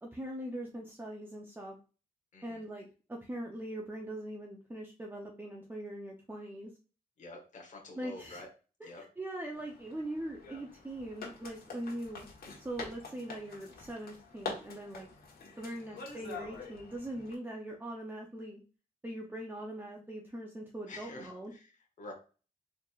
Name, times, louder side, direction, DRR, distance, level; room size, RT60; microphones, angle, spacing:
voice 1, 0.0-1.7 2.4-6.7 8.0-8.4 8.8-12.3 12.6-15.1 15.6-18.6 19.0-21.5, right 1 dB, 15° right, 0 dB, 0.6 m, -41 dB
voice 2, 2.3-2.6 7.2-8.5 8.8-9.0 15.7-15.8 20.9-21.7 22.0-22.1, left 2 dB, 55° left, 1 dB, 1.0 m, -47 dB
sound 1, 9.5-17.3, left 4 dB, 80° left, 1.3 m, -46 dB
4.2 x 3.2 x 2.4 m, 0.35 s
cardioid pair, 90°, 16 cm